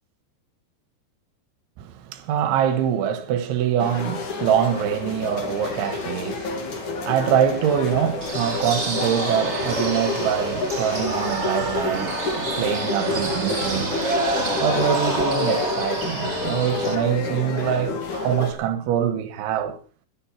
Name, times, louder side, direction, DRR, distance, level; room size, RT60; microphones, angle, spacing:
voice 1, 1.8-14.0 14.6-19.8, right 9 dB, 75° right, 3.7 m, -24 dB
sound 1, 3.8-18.5, left 4 dB, 45° left, 3.3 m, -29 dB
sound 2, 8.2-16.9, right 3 dB, 50° right, 0.7 m, -28 dB
22.0 x 10.0 x 4.3 m
omnidirectional pair, 5.6 m